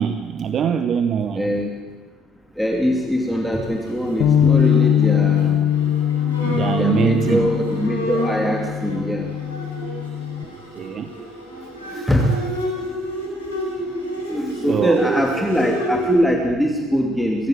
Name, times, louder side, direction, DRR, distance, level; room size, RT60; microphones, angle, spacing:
voice 1, 0.0-1.5 6.4-7.5 10.4-11.1 11.9-12.1 14.7-15.2, right 8 dB, 40° right, 10 dB, 1.0 m, -23 dB
voice 2, 1.3-1.7 2.6-5.6 6.8-9.3 11.9-12.3 14.3-17.5, equal, ahead, 1 dB, 2.7 m, -22 dB
Bowed string instrument, 3.2-16.2, equal, 90° right, 4.9 m, -30 dB
Bass guitar, 4.2-10.4, left 9 dB, 50° left, 1.1 m, -21 dB
23.5 x 15.0 x 7.8 m, 1.4 s
figure-of-eight pair, 60°, 0 cm